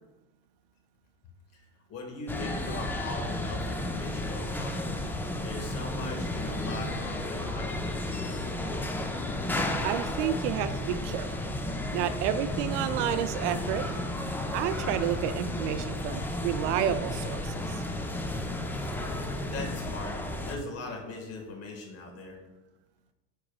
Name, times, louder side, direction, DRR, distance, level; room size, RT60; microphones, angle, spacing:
voice 1, 1.9-4.9 5.3-8.5 18.8-19.0 19.4-22.4, left 3 dB, 40° left, 2 dB, 1.7 m, -40 dB
sound 1, 2.3-20.6, left 1 dB, 5° left, 0.3 m, -33 dB
voice 2, 9.8-11.5 11.9-13.9 14.5-17.8, right 11 dB, 70° right, 12 dB, 0.5 m, -30 dB
10.0 x 4.5 x 2.4 m, 1.1 s
supercardioid pair, 115°, 37 cm